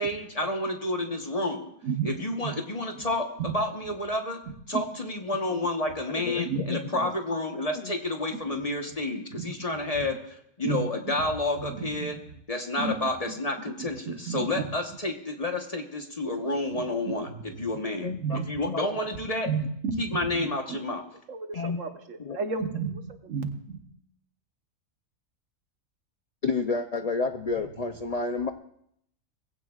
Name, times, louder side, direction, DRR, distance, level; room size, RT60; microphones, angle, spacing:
voice 1, 0.0-1.7 2.0-3.3 3.5-4.4 4.7-12.2 12.5-18.1 18.5-19.5 20.0-21.0, left 2 dB, 30° left, 4 dB, 1.1 m, -30 dB
voice 2, 4.5-4.8 5.5-5.6 6.4-6.6 6.9-7.0 8.3-8.6 9.3-10.1 10.6-11.2 11.6-12.2 12.8-13.4 13.8-15.0 16.7-17.7 18.1-18.6 19.5-20.8 21.3-23.8, right 5 dB, 65° right, 7 dB, 1.4 m, -34 dB
voice 3, 6.2-6.8 7.7-8.0 18.0-18.9 21.5-21.8 22.2-22.4 26.4-28.5, left 4 dB, 70° left, 6 dB, 0.3 m, -30 dB
21.0 x 15.5 x 2.4 m, 0.72 s
omnidirectional pair, 1.4 m